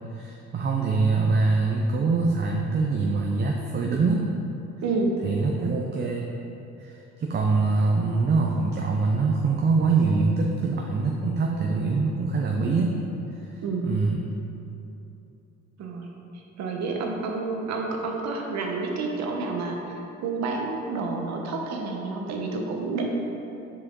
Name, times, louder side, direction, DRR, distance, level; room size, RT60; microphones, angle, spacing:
voice 1, 0.1-4.3 5.2-6.3 6.8-13.0 13.5-14.2, right 4 dB, 35° right, 0 dB, 0.6 m, -24 dB
voice 2, 4.8-5.2 13.6-13.9 15.8-16.1 16.3-23.1, right 3 dB, 65° right, 1 dB, 1.0 m, -29 dB
6.7 x 4.8 x 3.7 m, 2.9 s
cardioid pair, 95°, 29 cm